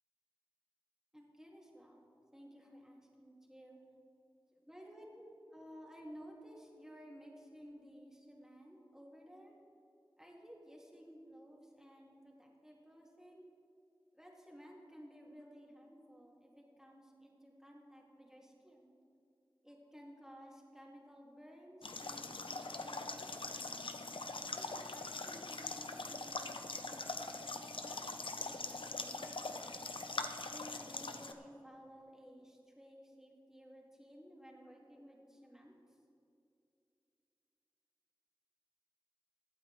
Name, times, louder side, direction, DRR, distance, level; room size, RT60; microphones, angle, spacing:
voice 1, 1.1-2.0 2.3-3.8 4.6-9.5 10.2-13.5 14.1-18.9 19.6-23.7 24.5-29.8 30.4-35.7, equal, 5° right, -2 dB, 2.5 m, -56 dB
Pond At Kayes, 21.8-31.3, left 3 dB, 75° left, 0.7 m, -42 dB
22.5 x 8.8 x 3.4 m, 2.6 s
wide cardioid pair, 45°, 9 cm